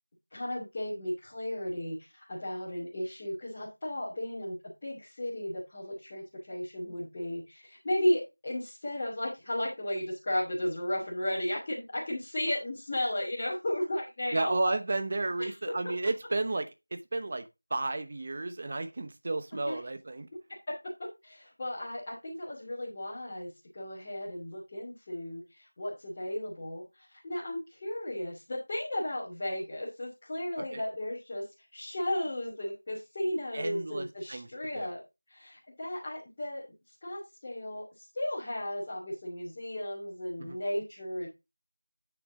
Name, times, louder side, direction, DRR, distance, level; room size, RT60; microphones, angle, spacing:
voice 1, 0.3-14.7 15.4-15.5 19.7-19.8 21.2-31.4 31.7-35.0 35.3-36.6 37.0-41.3, left 1 dB, 15° left, 2.8 m, -34 dB
voice 2, 14.3-20.3 30.6-30.8 33.5-34.5 34.7-34.9 40.4-40.6, right 2 dB, 25° right, 0.9 m, -33 dB
9.3 x 7.1 x 3.7 m
figure-of-eight pair, 175°, 0 cm